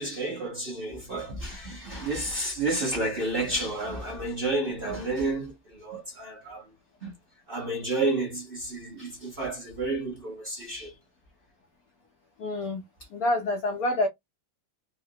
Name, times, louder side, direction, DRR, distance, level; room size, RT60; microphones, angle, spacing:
voice 1, 0.0-6.6 7.0-7.1 7.5-10.9, right 2 dB, 40° right, 0.8 m, -31 dB
voice 2, 12.4-12.8 13.1-14.1, left 1 dB, 80° left, 0.8 m, -27 dB
3.8 x 2.0 x 2.7 m
omnidirectional pair, 2.3 m